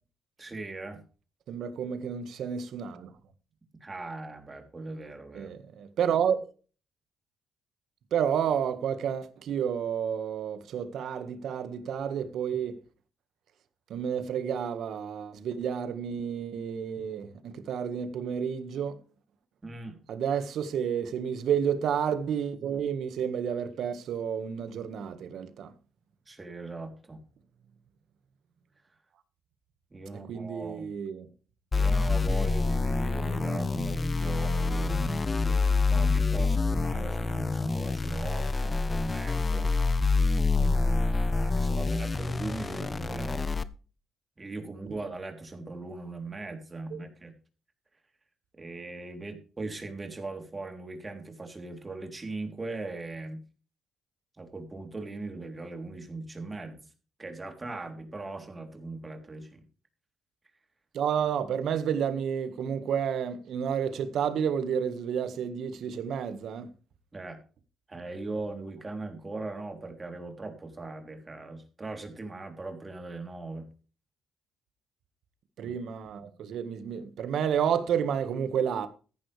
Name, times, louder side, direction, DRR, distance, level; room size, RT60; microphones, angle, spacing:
voice 1, 0.4-1.0 3.8-5.5 19.6-20.0 26.3-27.2 29.9-30.9 31.7-39.7 40.6-43.4 44.4-47.3 48.6-53.4 54.4-56.8 57.2-59.6 67.1-67.4 67.9-73.7 75.6-75.7, right 3 dB, 25° right, 3.5 m, -39 dB
voice 2, 1.5-3.1 5.3-6.5 8.1-12.8 13.9-19.0 20.1-25.7 30.1-31.3 44.9-45.0 46.9-47.0 60.9-66.7 75.6-78.9, right 8 dB, 70° right, 1.7 m, -30 dB
sound 1, 31.7-43.6, left 3 dB, 25° left, 0.9 m, -27 dB
14.5 x 10.5 x 3.4 m
cardioid pair, 90°, 0 cm